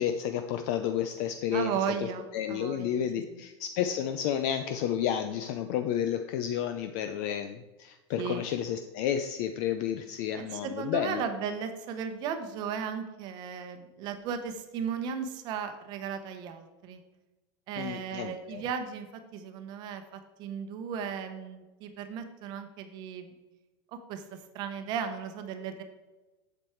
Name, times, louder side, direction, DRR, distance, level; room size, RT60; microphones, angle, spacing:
voice 1, 0.0-2.1 2.3-11.2 17.8-18.6, left 9 dB, 40° left, 7 dB, 0.5 m, -31 dB
voice 2, 1.5-3.4 8.2-8.5 10.3-17.0 17.7-19.1 19.3-23.3 23.9-25.8, right 7 dB, 30° right, 8 dB, 0.9 m, -36 dB
8.1 x 7.1 x 4.4 m, 1.1 s
supercardioid pair, 170°, 14 cm